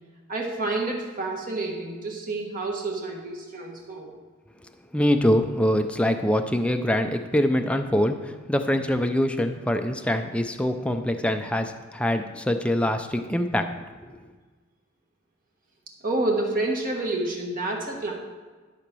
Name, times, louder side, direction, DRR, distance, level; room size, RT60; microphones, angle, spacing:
voice 1, 0.3-4.1 16.0-18.1, right 2 dB, 45° right, 0 dB, 1.6 m, -29 dB
voice 2, 4.9-13.7 14.0-14.2, left 1 dB, 5° left, 6 dB, 0.5 m, -24 dB
12.0 x 5.1 x 6.2 m, 1.4 s
head